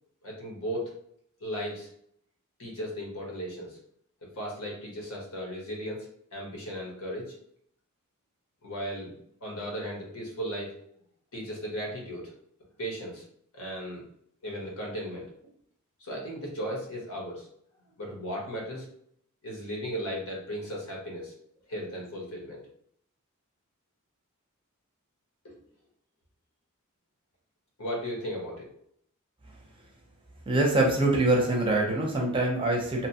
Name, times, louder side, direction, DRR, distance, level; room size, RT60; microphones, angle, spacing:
voice 1, 0.2-0.9 1.4-1.9 2.6-3.8 4.4-7.3 8.6-10.8 11.3-12.3 12.8-13.2 13.5-14.0 14.4-15.3 16.0-17.5 18.0-18.9 19.4-21.3 21.7-22.6 25.4-25.6 27.8-28.7, equal, 75° left, -2 dB, 1.0 m, -36 dB
voice 2, 30.5-33.1, right 2 dB, 25° right, -1 dB, 0.6 m, -24 dB
2.8 x 2.2 x 2.7 m, 0.67 s
head